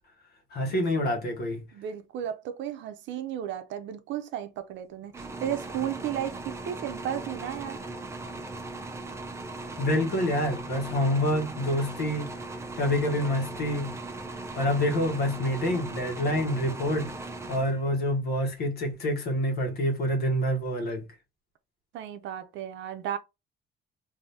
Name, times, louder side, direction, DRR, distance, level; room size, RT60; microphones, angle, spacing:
voice 1, 0.5-1.7 9.8-12.3 12.8-13.9 14.6-21.1, left 1 dB, 55° left, 1.2 m, -27 dB
voice 2, 1.7-7.8 21.9-23.2, right 10 dB, 80° right, 0.6 m, -34 dB
sound 1, 5.1-18.1, right 2 dB, 15° right, 0.5 m, -38 dB
2.7 x 2.7 x 3.4 m
cardioid pair, 155°, 19 cm